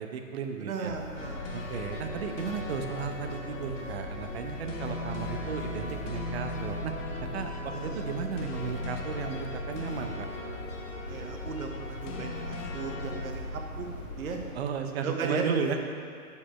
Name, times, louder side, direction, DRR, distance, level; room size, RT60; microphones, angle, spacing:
voice 1, 0.0-0.9 1.5-6.9 7.2-10.3 14.5-15.8, right 6 dB, 45° right, 5 dB, 0.7 m, -34 dB
voice 2, 0.6-1.4 7.6-8.0 11.1-13.9 14.2-14.4 15.0-15.4, right 5 dB, 65° right, 2 dB, 1.1 m, -36 dB
sound 1, 0.9-14.5, left 1 dB, 40° left, 1.6 m, -40 dB
sound 2, 1.2-13.2, left 3 dB, 55° left, 1.2 m, -40 dB
6.7 x 5.2 x 4.7 m, 2.3 s
hypercardioid pair, 140°, 45 cm